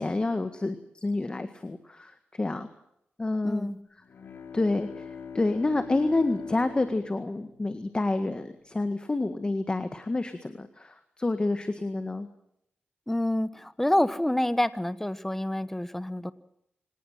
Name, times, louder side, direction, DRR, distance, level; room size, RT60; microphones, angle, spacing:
voice 1, 0.0-2.7 3.2-3.7 4.5-12.3, left 2 dB, 25° left, 9 dB, 1.8 m, -29 dB
voice 2, 3.4-3.8 13.1-16.3, left 1 dB, 10° left, 14 dB, 1.2 m, -27 dB
Bowed string instrument, 4.0-8.6, left 6 dB, 65° left, 2.9 m, -43 dB
25.5 x 19.0 x 7.5 m, 0.76 s
wide cardioid pair, 115°, 4 cm